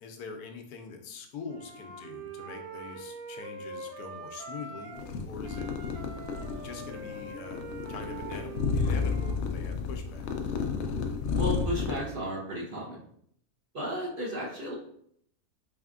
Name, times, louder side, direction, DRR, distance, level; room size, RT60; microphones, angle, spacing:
voice 1, 0.0-5.7 6.5-10.3, left 4 dB, 85° left, 5 dB, 1.1 m, -43 dB
Wind instrument woodwind instrument, 1.5-5.1 5.4-9.4, right 3 dB, 75° right, 1.1 m, -43 dB
sound 1, 4.9-12.0, left 5 dB, 70° left, 0.7 m, -32 dB
voice 2, 11.3-13.0 13.7-14.7, equal, 40° right, -5 dB, 0.9 m, -33 dB
4.2 x 3.4 x 2.4 m, 0.68 s
omnidirectional pair, 1.6 m